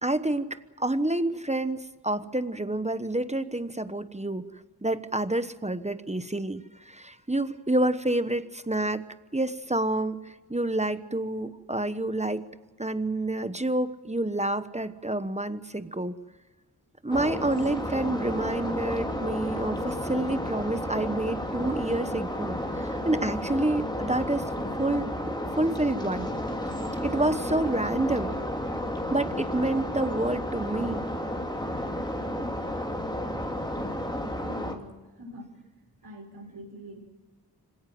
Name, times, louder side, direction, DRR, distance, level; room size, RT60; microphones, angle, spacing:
voice 1, 0.0-4.5 4.8-9.0 9.3-12.5 12.8-16.2 17.0-24.5 24.8-26.3 27.0-28.3 29.1-31.0, right 1 dB, 15° right, 11 dB, 1.1 m, -28 dB
sound 1, 17.1-34.8, left 1 dB, 10° left, 2.9 m, -32 dB
voice 2, 34.4-35.6 36.0-37.0, equal, 75° right, 2 dB, 5.8 m, -44 dB
26.0 x 17.0 x 7.7 m, 1.2 s
wide cardioid pair, 65°, 38 cm